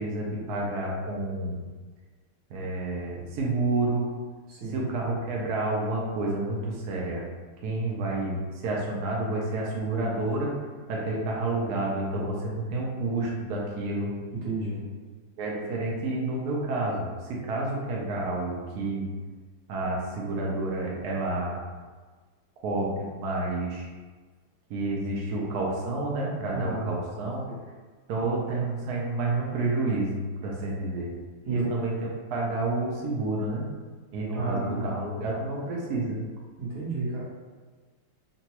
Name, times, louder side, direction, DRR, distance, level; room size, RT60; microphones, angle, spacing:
voice 1, 0.0-1.6 2.5-4.1 4.7-7.2 7.6-10.6 10.9-14.1 15.4-19.1 19.7-21.6 22.6-23.9 24.7-27.4 28.1-30.2 30.4-31.1 31.5-33.7 34.1-36.2, right 2 dB, 85° right, -3 dB, 0.8 m, -29 dB
voice 2, 4.5-4.8 14.3-14.9 26.5-26.9 27.5-27.6 31.4-31.7 34.3-35.0 36.6-37.2, right 3 dB, 60° right, -6 dB, 1.3 m, -32 dB
3.9 x 2.2 x 2.8 m, 1.4 s
omnidirectional pair, 2.4 m